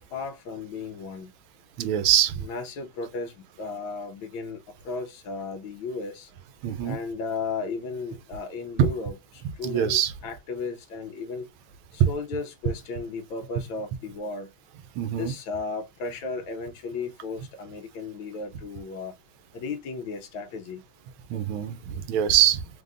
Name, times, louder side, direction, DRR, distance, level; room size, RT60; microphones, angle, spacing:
voice 1, 0.1-1.3 2.4-6.3 6.8-11.5 11.9-14.5 15.2-19.1 19.5-20.8, left 4 dB, 85° left, 1.6 m, -35 dB
voice 2, 1.8-2.3 6.6-7.0 8.8-8.9 9.6-10.1 15.0-15.3 21.3-21.8 22.1-22.6, right 10 dB, 85° right, 1.5 m, -23 dB
3.9 x 3.7 x 2.4 m
omnidirectional pair, 2.1 m